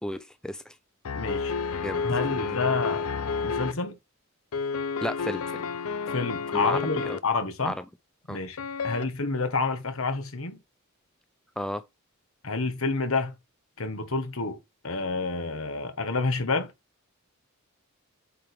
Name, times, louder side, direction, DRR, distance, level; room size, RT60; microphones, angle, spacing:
voice 1, 0.0-0.7 1.8-2.0 2.3-2.5 5.0-5.6 6.5-7.2 7.6-7.7 8.3-8.4 11.6-11.8, left 1 dB, 5° left, 0.4 m, -33 dB
sound 1, 1.0-3.7 4.5-7.2 8.6-9.0, left 5 dB, 90° left, 0.6 m, -30 dB
voice 2, 1.1-1.5 2.0-3.0 3.4-4.0 6.1-7.7 8.3-8.6 8.8-10.6 12.4-13.3 13.8-14.6 14.8-16.7, left 3 dB, 70° left, 1.5 m, -29 dB
8.5 x 4.6 x 3.5 m
head